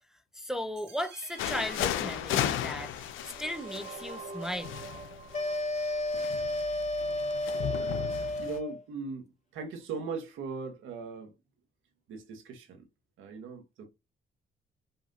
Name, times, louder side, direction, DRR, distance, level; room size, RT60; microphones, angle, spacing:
voice 1, 0.3-3.1 3.4-4.7, left 1 dB, ahead, 0.6 m, -36 dB
sound 1, 0.8-6.8, right 4 dB, 60° right, 1.3 m, -47 dB
sound 2, 1.4-8.6, left 11 dB, 85° left, 0.6 m, -35 dB
sound 3, 5.3-8.8, left 1 dB, 35° left, 0.7 m, -32 dB
voice 2, 8.4-9.3 9.5-11.3 12.1-12.9 13.2-13.9, right 4 dB, 85° right, 1.2 m, -39 dB
5.5 x 2.7 x 2.7 m
cardioid pair, 90°, 20 cm